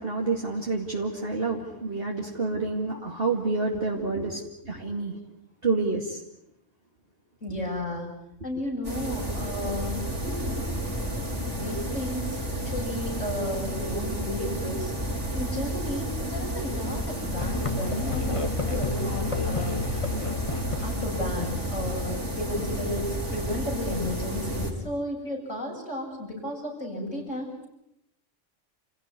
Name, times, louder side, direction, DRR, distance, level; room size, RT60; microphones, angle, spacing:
voice 1, 0.0-4.4 4.7-5.2 5.6-6.2, right 3 dB, 50° right, -1 dB, 2.5 m, -28 dB
voice 2, 7.4-8.1 8.4-10.8 11.5-14.9 15.3-20.0 20.8-27.7, left 1 dB, 80° left, -2 dB, 8.6 m, -33 dB
sound 1, 8.8-24.7, equal, 70° right, 5.6 m, -31 dB
Musical instrument, 17.4-22.2, left 3 dB, 25° left, 1.7 m, -31 dB
28.5 x 16.5 x 9.8 m, 0.83 s
omnidirectional pair, 1.3 m